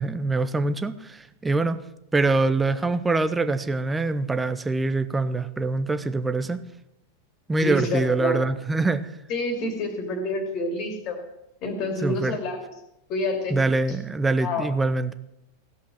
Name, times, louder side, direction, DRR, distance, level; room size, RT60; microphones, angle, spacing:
voice 1, 0.0-1.8 2.1-6.6 7.5-9.0 12.0-12.4 13.5-15.1, right 3 dB, 10° right, 11 dB, 0.7 m, -24 dB
voice 2, 7.6-8.4 9.3-11.2 11.6-12.7 13.1-13.6 14.4-14.7, left 2 dB, 40° left, 6 dB, 2.5 m, -28 dB
16.5 x 5.6 x 7.5 m, 0.85 s
figure-of-eight pair, 90°, 0 cm